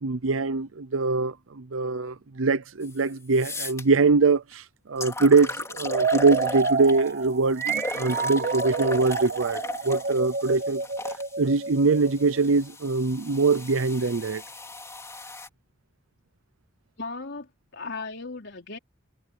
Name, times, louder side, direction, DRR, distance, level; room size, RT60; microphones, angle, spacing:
voice 1, 0.0-10.8 11.4-14.4, right 4 dB, 85° right, 0.7 m, -23 dB
sound 1, 2.8-2.9 3.3-3.8 4.5-4.6 5.0-7.1 7.6-11.2 12.1-15.5, left 2 dB, 15° left, 3.4 m, -36 dB
sound 2, 5.8-12.5, right 4 dB, 45° right, 1.0 m, -29 dB
voice 2, 17.0-18.8, left 3 dB, 60° left, 4.4 m, -36 dB
head